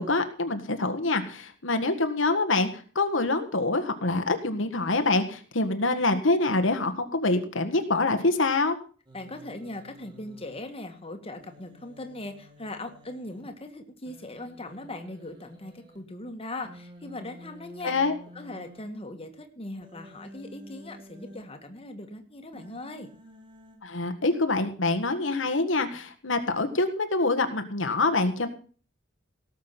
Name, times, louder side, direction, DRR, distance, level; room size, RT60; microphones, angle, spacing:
voice 1, 0.0-8.8 17.8-18.1 23.8-28.5, left 2 dB, 80° left, 6 dB, 1.7 m, -25 dB
voice 2, 9.1-17.9 18.3-23.1, left 2 dB, 30° left, 5 dB, 1.9 m, -40 dB
Human voice, 9.1-10.6 11.4-13.4 14.1-16.0 16.6-18.8 19.8-21.4 22.5-23.8, equal, 25° right, 3.5 m, -50 dB
18.0 x 7.5 x 5.9 m, 0.40 s
head